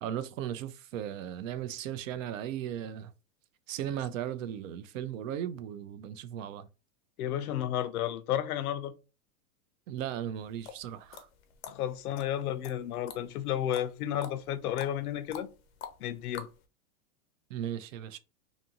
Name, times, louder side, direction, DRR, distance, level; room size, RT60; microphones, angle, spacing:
voice 1, 0.0-3.1 3.7-6.7 9.9-11.3 17.5-18.2, right 10 dB, 65° right, 0.5 m, -37 dB
voice 2, 7.2-8.9 11.6-15.5 16.0-16.5, left 11 dB, 85° left, 0.6 m, -32 dB
sound 1, 10.4-16.6, left 7 dB, 45° left, 0.5 m, -46 dB
2.6 x 2.5 x 2.7 m
supercardioid pair, 150°, 43 cm